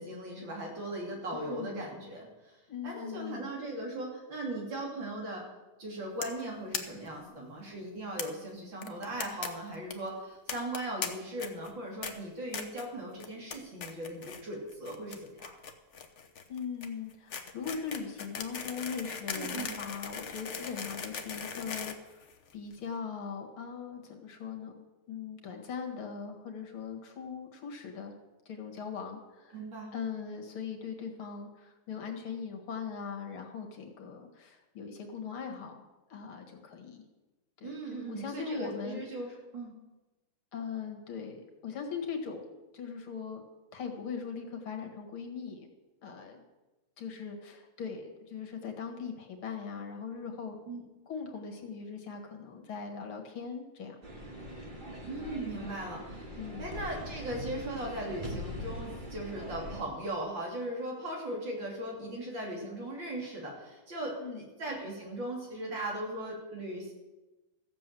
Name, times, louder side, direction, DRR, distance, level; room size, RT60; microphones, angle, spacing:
voice 1, 0.0-2.6 2.8-5.4 5.8-15.5 19.3-19.8 29.5-29.9 37.6-39.8 50.7-50.8 55.1-56.3 56.6-66.9, right 1 dB, 60° right, -1 dB, 3.8 m, -38 dB
voice 2, 1.3-1.9 2.7-3.5 16.5-28.2 28.5-29.6 29.9-35.7 36.1-37.0 37.6-39.0 40.5-43.4 43.7-45.7 46.0-46.4 47.0-50.6 51.1-54.0 56.4-56.7 64.2-64.4, left 6 dB, 75° left, 3 dB, 2.6 m, -40 dB
sound 1, 6.2-6.4 6.7-6.8 7.1-7.2 7.4-7.5 8.2-8.3 8.8-9.5 9.7-9.9 10.5-11.1 11.4-11.7 12.0-12.1 12.5-12.9 13.2-13.6 13.8-14.4 14.7-22.7, left 6 dB, 45° left, 1.0 m, -38 dB
sound 2, 54.0-59.8, equal, 25° right, 2.1 m, -42 dB
14.5 x 7.7 x 7.6 m, 1.1 s
omnidirectional pair, 2.4 m